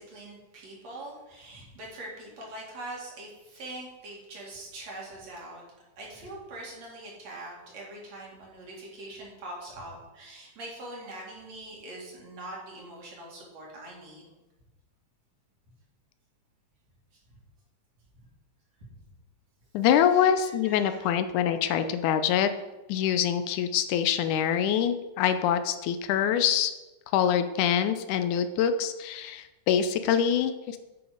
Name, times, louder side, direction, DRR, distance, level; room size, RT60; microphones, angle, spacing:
voice 1, 0.0-5.6 6.0-14.3 18.9-19.0 20.1-21.1, right 1 dB, 60° right, -3 dB, 3.3 m, -43 dB
voice 2, 19.7-22.5 22.9-26.7 27.1-30.8, left 9 dB, 80° left, 10 dB, 2.0 m, -25 dB
8.9 x 6.1 x 5.1 m, 1.1 s
omnidirectional pair, 3.6 m